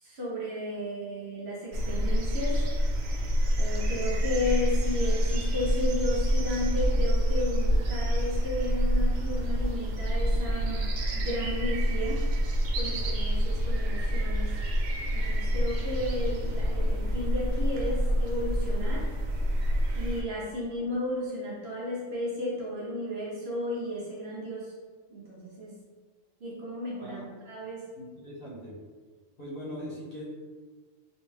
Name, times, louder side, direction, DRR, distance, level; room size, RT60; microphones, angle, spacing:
voice 1, 0.0-2.6 3.6-10.9 11.1-12.3 12.8-14.5 15.1-19.1 19.9-24.7 25.1-25.7 26.4-27.8, left 1 dB, 60° right, -4 dB, 0.9 m, -33 dB
sound 1, 1.7-20.2, equal, 90° right, 1.0 m, -27 dB
voice 2, 28.0-28.8 29.4-30.2, equal, 50° left, -6 dB, 1.0 m, -40 dB
3.3 x 2.5 x 3.2 m, 1.5 s
omnidirectional pair, 1.3 m